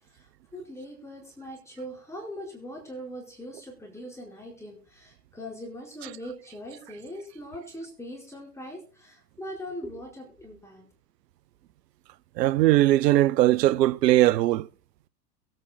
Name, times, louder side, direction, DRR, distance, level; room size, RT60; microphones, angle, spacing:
voice 1, 0.1-10.8, equal, 5° left, 4.5 m, -41 dB
voice 2, 12.4-14.7, right 15 dB, 80° right, 0.6 m, -20 dB
22.0 x 9.0 x 2.2 m
hypercardioid pair, 105°, 48 cm